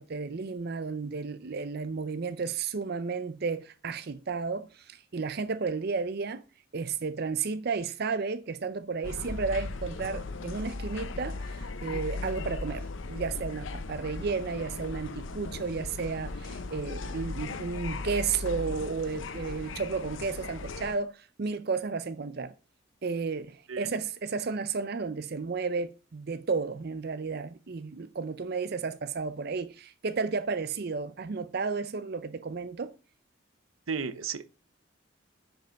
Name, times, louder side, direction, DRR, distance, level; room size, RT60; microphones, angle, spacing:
voice 1, 0.0-6.4 6.7-22.5 23.0-32.9, right 4 dB, 50° right, 0.5 m, -33 dB
sound 1, 9.0-21.0, left 3 dB, 70° left, 0.7 m, -37 dB
voice 2, 33.9-34.5, right 5 dB, 90° right, 0.8 m, -33 dB
10.0 x 5.3 x 5.2 m
head